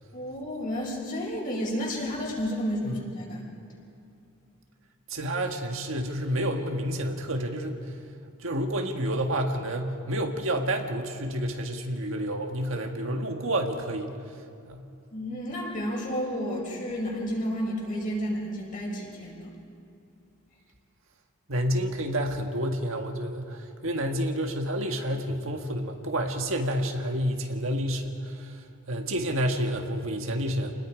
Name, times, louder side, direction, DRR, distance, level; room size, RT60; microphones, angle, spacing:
voice 1, 0.1-3.4 15.1-19.5, equal, 40° left, -3 dB, 5.9 m, -31 dB
voice 2, 5.1-7.8 8.4-14.1 14.7-14.8 21.5-28.6 28.9-30.7, equal, 70° right, 3 dB, 1.7 m, -29 dB
29.5 x 20.0 x 5.1 m, 2.6 s
head